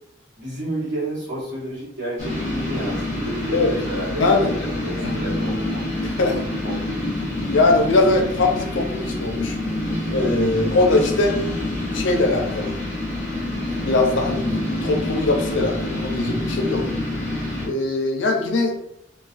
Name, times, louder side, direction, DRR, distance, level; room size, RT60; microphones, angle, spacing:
voice 1, 0.4-5.8 6.2-7.1, right 1 dB, 65° right, -7 dB, 1.1 m, -31 dB
sound 1, 2.2-17.7, left 1 dB, 10° left, 0.8 m, -27 dB
voice 2, 6.0-6.4 7.4-9.5 10.1-11.4 11.9-12.7 13.8-16.9 17.6-18.7, left 2 dB, 80° left, 3 dB, 0.5 m, -21 dB
2.3 x 2.2 x 2.4 m, 0.77 s
head